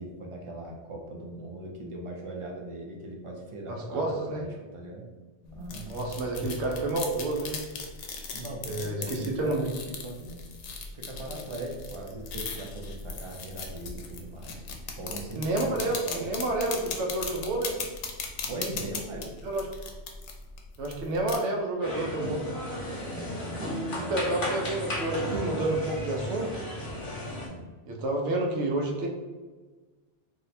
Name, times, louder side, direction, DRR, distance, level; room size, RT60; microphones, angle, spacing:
voice 1, 0.0-5.0 5.5-6.0 8.3-10.5 10.9-14.6 15.0-16.4 18.5-19.3 23.1-24.4 24.7-24.8 27.5-27.7, right 2 dB, 45° right, -1 dB, 0.4 m, -40 dB
voice 2, 3.7-4.4 5.9-7.6 8.6-9.6 15.3-17.8 19.4-19.7 20.8-22.4 24.0-26.6 27.9-29.1, right 2 dB, 85° right, 1 dB, 0.9 m, -29 dB
sound 1, 5.4-21.4, left 4 dB, 90° left, 0.9 m, -38 dB
sound 2, 21.8-27.5, left 1 dB, 50° left, 1.0 m, -34 dB
2.8 x 2.1 x 4.1 m, 1.3 s
omnidirectional pair, 1.2 m